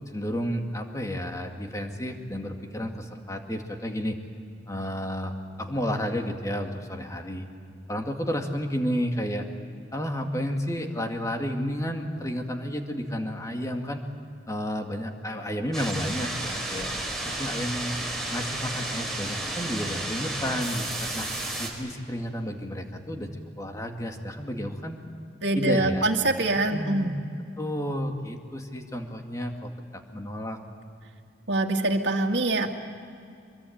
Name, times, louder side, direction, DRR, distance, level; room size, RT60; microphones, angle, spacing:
voice 1, 0.1-4.2 4.7-5.3 5.6-7.4 7.9-9.5 9.9-14.0 14.5-16.9 17.2-17.9 18.3-21.3 21.6-25.0 25.6-26.1 26.7-27.1 27.6-30.6, equal, 20° left, 3 dB, 2.2 m, -31 dB
sound 1, 15.7-21.7, right 1 dB, ahead, 4.6 m, -32 dB
voice 2, 25.4-27.2 31.5-32.7, right 2 dB, 80° right, 1 dB, 2.1 m, -24 dB
25.0 x 22.5 x 8.9 m, 2.4 s
head